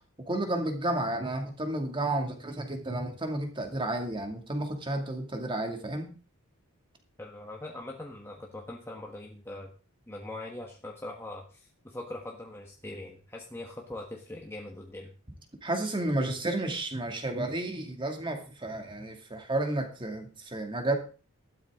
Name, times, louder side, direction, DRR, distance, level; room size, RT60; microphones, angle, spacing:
voice 1, 0.3-6.1 15.6-20.9, right 1 dB, 20° right, 4 dB, 2.3 m, -32 dB
voice 2, 7.2-9.7 10.1-15.1, left 1 dB, 10° left, -1 dB, 1.4 m, -42 dB
13.5 x 12.0 x 3.7 m, 0.35 s
head